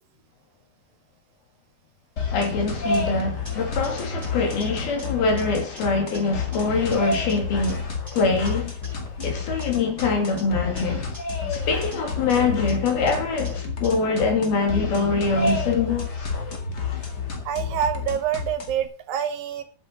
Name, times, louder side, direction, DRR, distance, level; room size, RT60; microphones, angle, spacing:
sound 1, 2.2-18.9, left 4 dB, 35° left, 1.8 m, -30 dB
voice 1, 2.3-8.7 9.2-11.1 11.5-16.3, left 4 dB, 75° left, 4.5 m, -24 dB
sound 2, 3.4-5.8 6.1-8.5 8.8-11.2 11.5-13.9, right 1 dB, 5° right, 4.3 m, -44 dB
voice 2, 17.5-19.6, right 9 dB, 70° right, 2.7 m, -26 dB
9.9 x 7.7 x 6.2 m
omnidirectional pair, 4.4 m